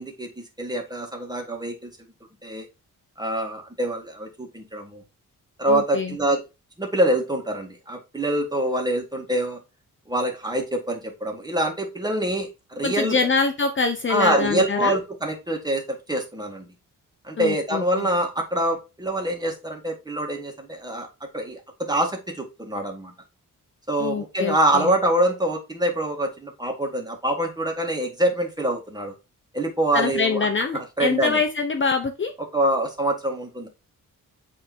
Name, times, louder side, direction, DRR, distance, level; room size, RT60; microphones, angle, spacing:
voice 1, 0.0-1.9 2.4-2.7 3.2-5.0 5.6-6.4 6.8-9.6 10.1-13.2 14.1-16.7 17.2-21.1 21.3-23.1 23.9-29.1 29.5-30.5 30.7-31.4 32.5-33.7, right 1 dB, 10° right, 2 dB, 2.1 m, -25 dB
voice 2, 5.7-6.2 12.8-15.0 17.4-18.1 24.0-24.9 29.9-32.3, left 4 dB, 35° left, 5 dB, 0.9 m, -25 dB
9.0 x 3.7 x 4.4 m, 0.26 s
wide cardioid pair, 165°, 33 cm